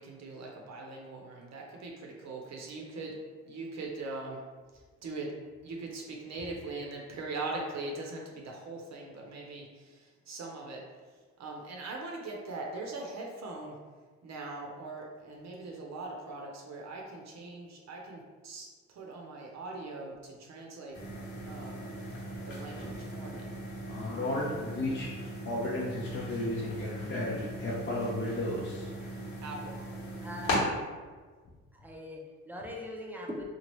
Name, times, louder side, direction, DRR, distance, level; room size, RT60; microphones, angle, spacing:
voice 1, 0.0-4.4 5.0-5.4 5.6-10.9 11.4-13.8 14.2-21.0 21.5-21.9 22.4-23.5 29.4-29.8, right 2 dB, 60° right, -1 dB, 0.7 m, -41 dB
sound 1, 20.9-30.6, equal, 75° left, 1.2 m, -39 dB
voice 2, 23.9-25.1 25.4-28.9, left 1 dB, 40° left, -6 dB, 0.6 m, -34 dB
voice 3, 30.2-30.6 31.7-33.4, equal, 5° right, -1 dB, 0.5 m, -41 dB
2.9 x 2.4 x 3.0 m, 1.4 s
cardioid pair, 90°, 30 cm